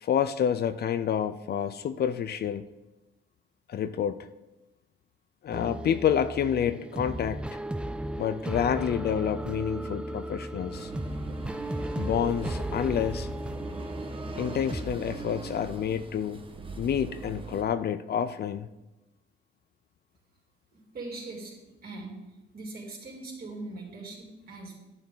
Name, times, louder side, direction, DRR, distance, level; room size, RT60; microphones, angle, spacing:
voice 1, 0.0-2.7 3.7-4.3 5.4-7.6 8.2-10.9 12.0-13.3 14.4-16.4 16.8-18.7, left 8 dB, 55° left, 13 dB, 0.5 m, -28 dB
sound 1, 5.5-14.9, right 1 dB, 5° right, 0.4 m, -35 dB
sound 2, 10.7-17.6, right 4 dB, 25° right, 1.2 m, -40 dB
voice 2, 20.7-21.6 21.8-22.2 22.5-24.8, right 2 dB, 50° right, -2 dB, 3.6 m, -41 dB
10.5 x 9.0 x 4.0 m, 1.0 s
cardioid pair, 90°, 20 cm